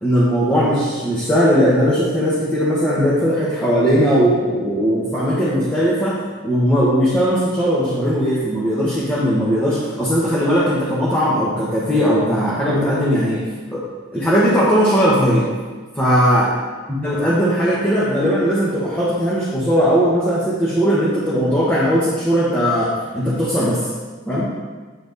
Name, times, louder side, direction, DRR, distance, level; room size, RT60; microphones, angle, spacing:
voice 1, 0.0-6.2 6.4-13.4 13.7-13.8 14.1-15.4 15.9-16.5 17.0-23.8 24.3-24.5, equal, 10° left, -9 dB, 1.1 m, -18 dB
8.7 x 4.4 x 4.0 m, 1.4 s
head